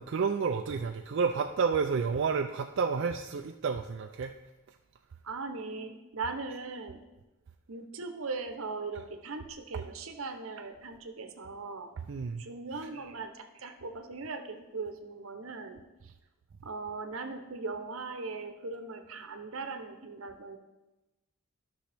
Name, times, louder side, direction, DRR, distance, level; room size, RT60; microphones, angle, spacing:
voice 1, 0.0-4.3 12.1-12.4, right 5 dB, 60° right, 5 dB, 0.4 m, -30 dB
voice 2, 5.2-7.0 7.7-11.9 12.4-16.1 16.6-20.6, right 4 dB, 80° right, 7 dB, 0.8 m, -39 dB
13.0 x 6.3 x 3.4 m, 1.1 s
head